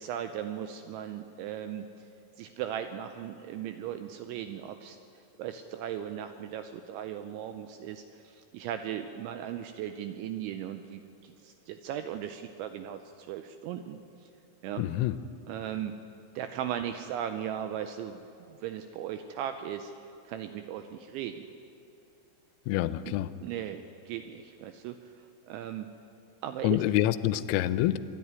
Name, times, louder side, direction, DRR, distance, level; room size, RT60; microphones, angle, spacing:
voice 1, 0.0-1.9 2.4-5.0 5.4-14.3 14.6-14.8 15.5-16.0 16.4-18.2 18.5-19.9 20.3-21.5 23.1-23.2 23.4-25.9 26.4-26.8, right 10 dB, 85° right, 8 dB, 2.7 m, -37 dB
voice 2, 14.8-15.2 22.7-23.3 26.6-28.0, left 14 dB, 85° left, 14 dB, 3.2 m, -27 dB
25.0 x 10.5 x 9.6 m, 2.7 s
omnidirectional pair, 6.0 m